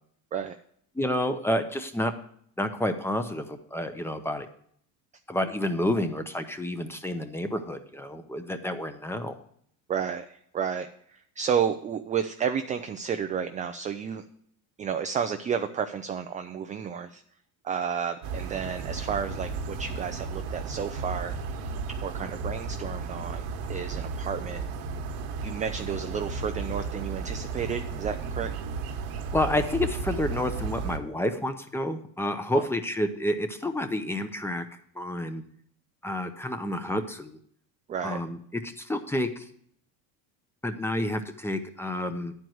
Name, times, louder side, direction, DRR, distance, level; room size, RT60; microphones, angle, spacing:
voice 1, 0.9-2.1 2.6-4.5 5.3-9.3 29.3-34.6 35.0-35.4 36.0-37.4 38.0-39.5 40.6-42.3, left 1 dB, 5° left, 8 dB, 0.7 m, -29 dB
voice 2, 9.9-14.2 14.8-17.2 17.6-21.7 22.0-24.6 25.4-28.5 32.5-32.7 37.9-38.2, right 7 dB, 20° right, 7 dB, 0.3 m, -31 dB
sound 1, 18.2-31.0, right 4 dB, 80° right, 1.3 m, -34 dB
10.5 x 4.6 x 7.8 m, 0.64 s
cardioid pair, 125°, 41 cm